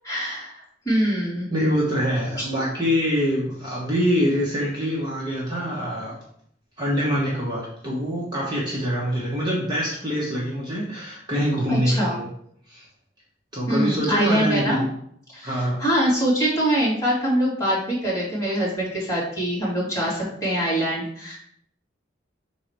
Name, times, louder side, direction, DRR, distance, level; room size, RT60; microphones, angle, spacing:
voice 1, 0.0-1.5 2.4-2.5 11.7-12.2 13.7-14.9 15.3-21.4, equal, 15° left, -7 dB, 2.5 m, -24 dB
voice 2, 1.5-6.1 6.8-12.3 12.7-12.8 13.5-14.8 15.4-15.8, equal, 20° right, -5 dB, 1.3 m, -24 dB
6.0 x 3.9 x 4.6 m, 0.67 s
head